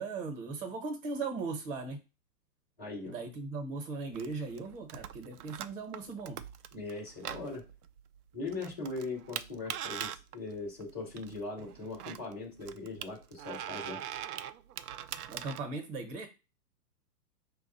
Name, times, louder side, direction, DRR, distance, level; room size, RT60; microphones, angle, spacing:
voice 1, 0.0-2.0 3.1-6.4 15.1-16.3, right 4 dB, 35° right, 4 dB, 1.0 m, -38 dB
voice 2, 2.8-3.1 6.7-7.6 8.3-14.0, left 3 dB, 5° left, -17 dB, 0.4 m, -40 dB
sound 1, 4.1-15.6, right 10 dB, 65° right, 0.5 m, -43 dB
5.0 x 2.3 x 3.9 m, 0.30 s
hypercardioid pair, 150°, 49 cm